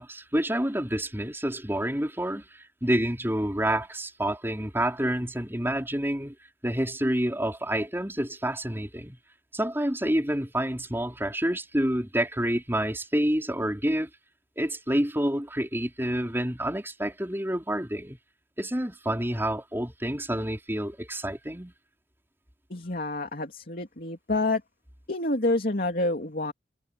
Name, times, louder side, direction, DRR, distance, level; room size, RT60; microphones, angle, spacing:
voice 1, 0.0-6.3 6.6-9.2 9.5-14.1 14.6-18.2 18.6-21.7, right 1 dB, 10° right, 5.0 m, -28 dB
voice 2, 22.7-24.6 25.1-26.5, left 2 dB, 50° left, 2.9 m, -28 dB
head